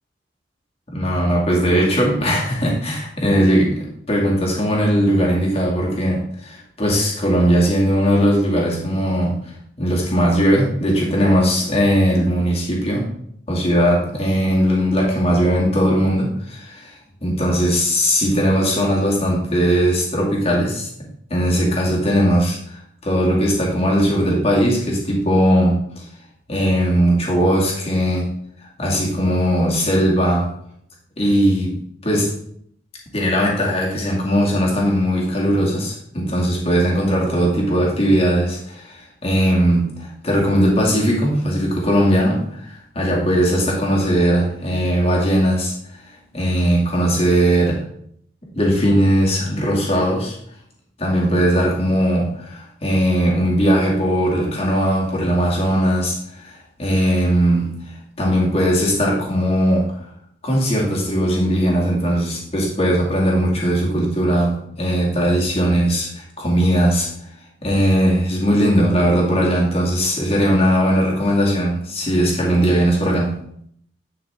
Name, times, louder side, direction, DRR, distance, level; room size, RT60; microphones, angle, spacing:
voice 1, 0.9-13.1 13.5-17.0 17.2-26.1 26.5-28.3 28.8-30.5 31.2-32.3 33.1-45.7 46.0-46.1 46.3-47.8 48.6-50.4 51.0-60.0 60.4-67.1 67.6-73.4, equal, 30° left, -3 dB, 2.3 m, -19 dB
10.5 x 5.7 x 3.5 m, 0.68 s
head